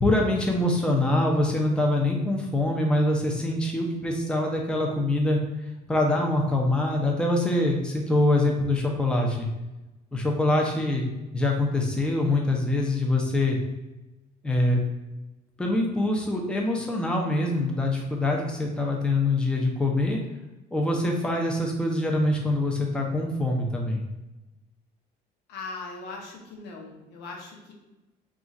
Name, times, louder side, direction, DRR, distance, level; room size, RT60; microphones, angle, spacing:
voice 1, 0.0-5.4 5.9-9.5 10.1-11.1 11.3-13.6 14.4-14.8 15.6-20.2 20.7-24.0, left 1 dB, 5° left, 0 dB, 0.6 m, -24 dB
voice 2, 25.5-27.7, left 3 dB, 85° left, -1 dB, 0.8 m, -39 dB
2.4 x 2.4 x 4.0 m, 1.0 s
cardioid pair, 110°, 17 cm